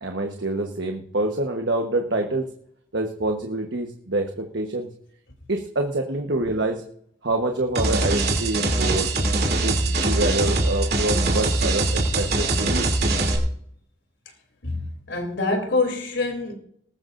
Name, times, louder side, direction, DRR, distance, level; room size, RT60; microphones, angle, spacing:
voice 1, 0.0-2.5 2.9-4.9 5.5-6.8 7.2-9.1 9.6-12.9, right 2 dB, 70° right, 1.2 m, -26 dB
sound 1, 7.8-13.4, right 2 dB, 55° right, 3.0 m, -22 dB
voice 2, 14.6-16.5, left 3 dB, 75° left, 3.3 m, -25 dB
20.0 x 12.0 x 2.6 m
head